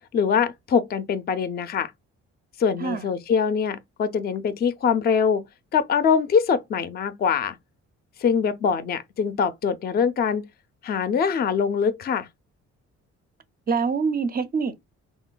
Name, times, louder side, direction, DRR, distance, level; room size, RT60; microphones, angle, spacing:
voice 1, 0.1-1.9 2.6-5.4 5.7-7.6 8.2-10.4 10.8-12.3, left 6 dB, 35° left, 0.4 m, -23 dB
voice 2, 13.7-14.8, right 5 dB, 30° right, 0.4 m, -25 dB
3.2 x 2.1 x 2.2 m
cardioid pair, 90°, 30 cm